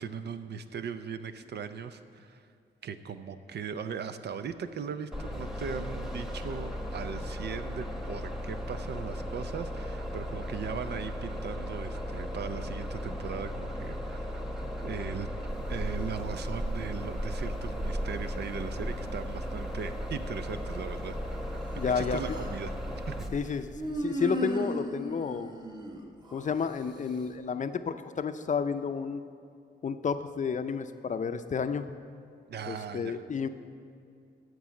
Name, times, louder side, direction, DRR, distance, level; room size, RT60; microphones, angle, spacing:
voice 1, 0.0-2.4 2.8-14.3 14.8-15.3 15.7-21.1 22.0-22.8 23.1-23.2 32.5-33.2, right 6 dB, 70° right, 10 dB, 0.6 m, -38 dB
Bus, 5.1-23.3, equal, ahead, 1.1 m, -36 dB
sound 1, 15.5-23.9, right 1 dB, 40° right, 1.2 m, -40 dB
Human voice, 21.6-22.6 23.8-26.5, right 1 dB, 25° right, 1.3 m, -36 dB
voice 2, 21.7-22.2 23.3-25.5 26.3-29.2 29.8-31.9 32.7-33.5, left 6 dB, 45° left, 10 dB, 0.5 m, -31 dB
13.5 x 4.7 x 7.5 m, 2.3 s
cardioid pair, 90°, 18 cm